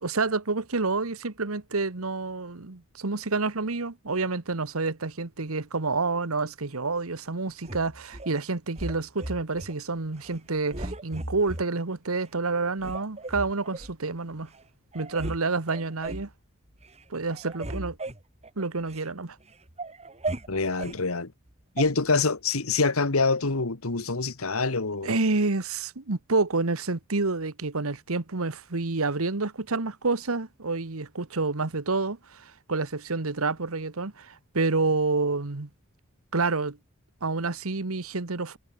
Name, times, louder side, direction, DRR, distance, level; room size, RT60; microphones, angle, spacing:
voice 1, 0.0-14.5 14.9-16.3 17.1-18.0 18.6-19.4 25.0-35.7 36.3-36.8 37.2-38.6, right 3 dB, 85° right, 1.4 m, -28 dB
sound 1, 7.6-8.3 8.8-9.7 10.1-10.4 10.7-11.6 12.2-12.3 12.8-13.9 14.5-14.6 14.9-15.4 15.7-16.3 16.7-17.0 17.3-19.1 19.5-21.0 21.8-21.9, right 2 dB, 30° right, 4.0 m, -36 dB
voice 2, 20.5-21.3 21.7-25.1, left 3 dB, 90° left, 1.7 m, -25 dB
head